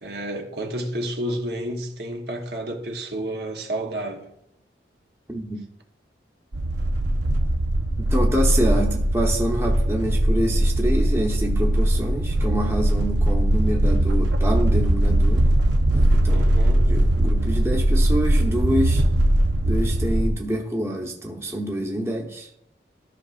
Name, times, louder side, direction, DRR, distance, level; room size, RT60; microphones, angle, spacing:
voice 1, 0.0-4.2 9.6-9.8 16.3-17.0, right 1 dB, 65° right, 1.1 m, -30 dB
sound 1, 6.5-20.3, right 1 dB, 85° right, 0.8 m, -20 dB
voice 2, 8.1-15.4 15.9-16.4 16.9-19.0 19.6-22.5, right 1 dB, 15° right, 0.9 m, -26 dB
13.5 x 6.0 x 2.5 m
head